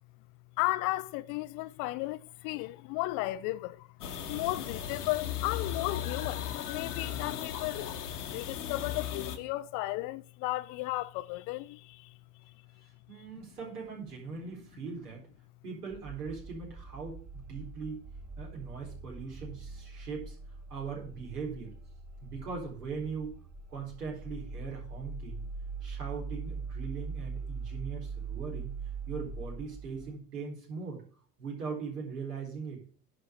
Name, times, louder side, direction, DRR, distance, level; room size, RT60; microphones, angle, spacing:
voice 1, 0.6-3.9 4.3-7.9 8.3-12.2, left 19 dB, 45° left, 0.5 m, -34 dB
sound 1, 4.0-9.4, left 10 dB, 75° left, 1.3 m, -36 dB
voice 2, 13.1-15.2 15.6-18.0 18.4-20.3 20.7-21.7 22.2-23.3 23.7-25.4 25.8-28.7 29.1-31.0 31.4-32.8, right 5 dB, 75° right, 4.3 m, -40 dB
sound 2, 15.9-30.2, right 4 dB, 35° right, 2.2 m, -42 dB
11.0 x 4.7 x 7.2 m
figure-of-eight pair, 70°, 47 cm